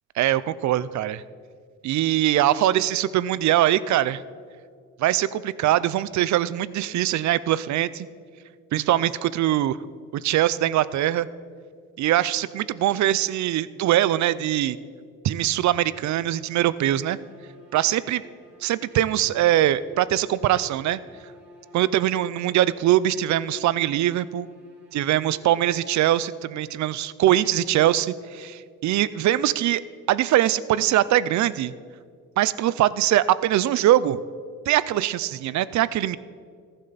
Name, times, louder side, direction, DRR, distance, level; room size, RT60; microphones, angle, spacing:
voice 1, 0.2-1.2 1.8-4.2 5.0-8.1 8.7-9.8 10.1-11.3 12.0-14.8 15.2-17.2 17.7-18.2 18.6-21.0 21.7-24.5 24.9-29.8 30.1-31.7 32.4-34.2 34.7-36.2, right 13 dB, 70° right, 18 dB, 0.5 m, -22 dB
sound 1, 16.3-26.5, left 1 dB, 35° right, 3.5 m, -50 dB
14.5 x 12.0 x 4.0 m, 2.1 s
cardioid pair, 90°, 30 cm